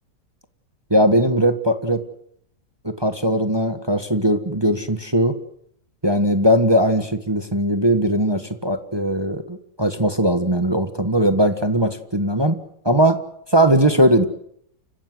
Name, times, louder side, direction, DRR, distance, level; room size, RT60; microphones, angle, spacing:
voice 1, 0.9-2.0 2.8-5.4 6.0-12.6 12.8-13.2 13.5-14.2, right 1 dB, 15° right, 9 dB, 1.2 m, -19 dB
29.5 x 15.5 x 7.9 m, 0.71 s
omnidirectional pair, 1.9 m